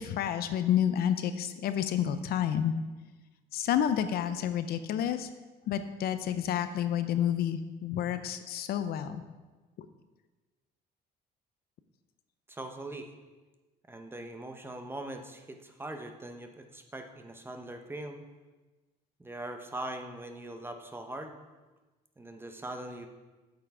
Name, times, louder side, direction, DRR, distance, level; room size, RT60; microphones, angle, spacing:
voice 1, 0.0-2.7 3.5-5.3 5.7-9.2, left 10 dB, 65° left, 10 dB, 0.6 m, -29 dB
voice 2, 12.5-13.1 13.9-18.2 19.2-21.4 22.2-23.1, right 1 dB, 15° right, 6 dB, 0.8 m, -41 dB
8.7 x 5.7 x 4.8 m, 1.2 s
cardioid pair, 110°, 17 cm